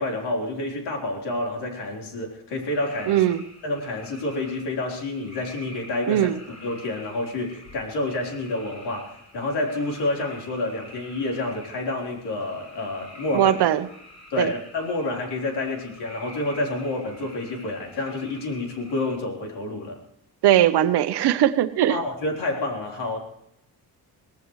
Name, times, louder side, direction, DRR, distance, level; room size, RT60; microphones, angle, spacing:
voice 1, 0.0-3.2 3.6-6.3 6.6-13.5 14.3-20.0 21.9-23.2, left 2 dB, 85° left, 0 dB, 4.2 m, -29 dB
sound 1, 2.5-19.2, left 1 dB, 45° left, 6.0 m, -47 dB
voice 2, 3.1-3.4 6.1-6.4 13.3-13.9 14.4-14.5 20.4-22.0, right 12 dB, 80° right, 10 dB, 1.0 m, -20 dB
23.5 x 18.0 x 3.2 m, 0.77 s
cardioid pair, 125°, 39 cm